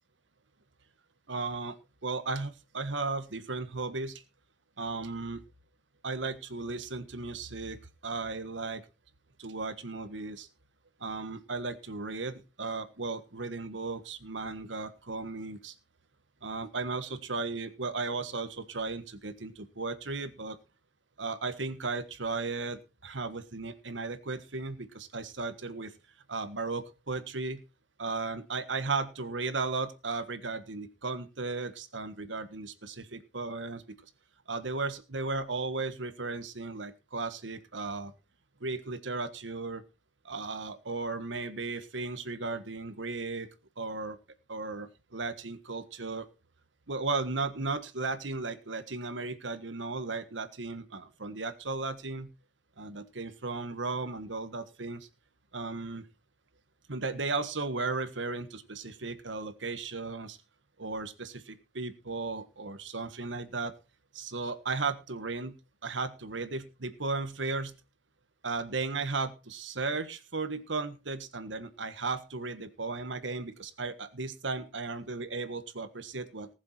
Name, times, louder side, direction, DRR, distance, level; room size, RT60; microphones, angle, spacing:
voice 1, 1.3-1.7 2.0-4.2 4.8-5.4 6.0-8.8 9.4-10.5 11.0-15.7 16.4-20.6 21.2-25.9 26.3-27.6 28.0-34.1 34.5-38.1 38.6-39.8 40.2-43.5 43.8-44.2 44.5-46.3 46.9-52.3 52.8-55.1 55.5-56.1 56.9-60.4 60.8-63.7 64.1-65.5 65.8-67.7 68.4-76.5, right 3 dB, 85° right, 11 dB, 1.5 m, -35 dB
19.5 x 7.3 x 4.4 m, 0.30 s
head